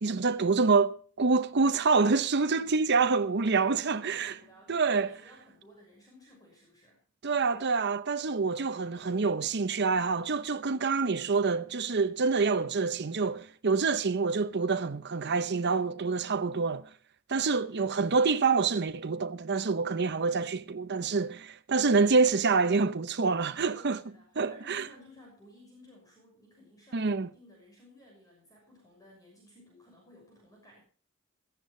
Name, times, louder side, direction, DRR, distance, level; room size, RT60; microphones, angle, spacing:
voice 1, 0.0-4.4 4.7-5.1 7.2-16.9 17.3-24.0 24.4-24.9 26.9-27.3, right 4 dB, 55° right, 0.8 m, -27 dB
voice 2, 3.6-7.0 17.7-17.9 23.7-30.8, left 1 dB, 20° left, 6.0 m, -56 dB
17.0 x 14.0 x 3.2 m
head